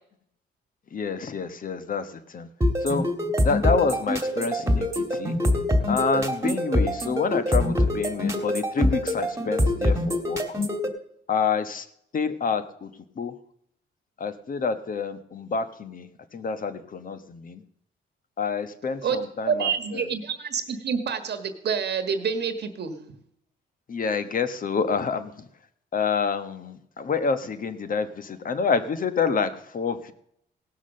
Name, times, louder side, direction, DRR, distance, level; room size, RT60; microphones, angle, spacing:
voice 1, 0.9-2.5 2.8-3.1 3.4-5.4 5.9-10.4 11.3-11.9 12.1-12.9 13.2-13.3 14.2-17.6 18.4-20.0 23.9-25.5 25.9-30.1, left 5 dB, 45° left, 11 dB, 1.1 m, -28 dB
sound 1, 2.6-10.9, left 1 dB, 15° right, 1.9 m, -24 dB
voice 2, 19.5-23.0, right 6 dB, 55° right, 7 dB, 1.4 m, -27 dB
17.5 x 6.2 x 6.4 m, 0.73 s
cardioid pair, 90°, 20 cm